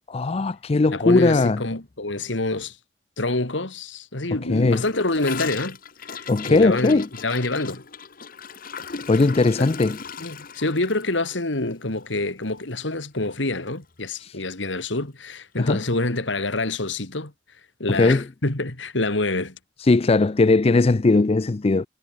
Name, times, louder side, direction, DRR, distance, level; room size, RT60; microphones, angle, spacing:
voice 1, 0.1-1.6 4.5-4.8 6.3-7.1 9.1-10.0 14.2-14.3 15.6-15.8 17.9-18.2 19.9-21.9, left 3 dB, 35° left, 0.5 m, -19 dB
voice 2, 0.9-2.8 3.2-7.8 9.6-9.7 10.2-17.3 17.8-19.6, left 2 dB, 75° left, 2.6 m, -27 dB
Gurgling / Toilet flush, 4.7-13.0 13.2-13.4 13.7-14.1 14.4-14.5 14.8-14.9 15.8-15.9, left 6 dB, 50° left, 1.3 m, -38 dB
head